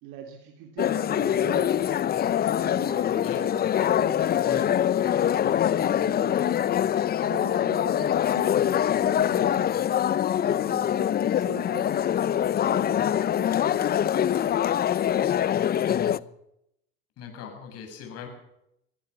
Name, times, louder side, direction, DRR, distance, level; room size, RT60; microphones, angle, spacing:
voice 1, 0.0-1.7 2.5-4.4 5.2-6.7 7.2-8.5 8.9-9.7 10.3-14.6, right 8 dB, 70° right, 2 dB, 3.2 m, -43 dB
sound 1, 0.8-16.2, left 10 dB, 35° left, 0.7 m, -24 dB
voice 2, 3.1-3.4 4.4-4.7 15.9-16.2 17.2-18.3, left 7 dB, 55° left, 4 dB, 7.9 m, -40 dB
23.0 x 16.0 x 7.0 m, 0.81 s
supercardioid pair, 90°, 29 cm